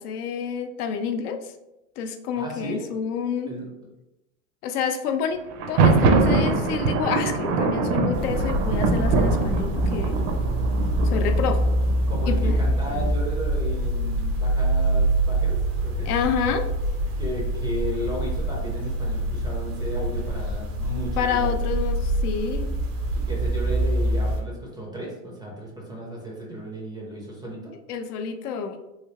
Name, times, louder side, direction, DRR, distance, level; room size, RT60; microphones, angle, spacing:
voice 1, 0.0-1.5 2.0-3.5 4.6-10.2 11.0-11.6 12.3-12.6 16.1-16.7 21.2-22.8 27.9-28.8, left 7 dB, 80° left, 7 dB, 0.6 m, -28 dB
voice 2, 2.3-2.9 3.5-3.7 12.1-16.1 17.2-21.6 23.1-27.7, equal, 10° right, -2 dB, 0.4 m, -34 dB
Thunder, 5.5-13.3, right 3 dB, 55° right, 0.6 m, -24 dB
sound 1, 8.1-24.4, right 1 dB, 90° right, 0.8 m, -25 dB
3.2 x 2.8 x 2.8 m, 0.94 s
supercardioid pair, 120°, 45 cm